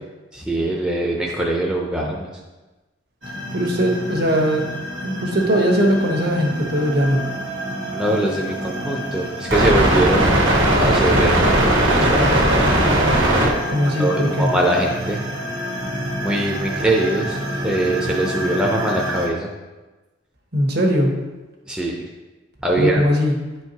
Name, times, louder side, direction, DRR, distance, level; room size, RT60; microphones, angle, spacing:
voice 1, 0.3-2.3 7.9-10.5 10.8-12.4 13.8-15.2 16.2-17.4 17.6-19.5 21.7-22.0 22.6-23.0, right 1 dB, 5° right, -2 dB, 0.6 m, -22 dB
sound 1, 3.2-19.3, right 1 dB, 80° right, 1.6 m, -22 dB
voice 2, 3.5-4.6 5.0-7.2 13.7-14.5 20.5-21.1 22.8-23.4, equal, 55° right, 0 dB, 1.2 m, -19 dB
10.0 x 4.5 x 2.8 m, 1.2 s
head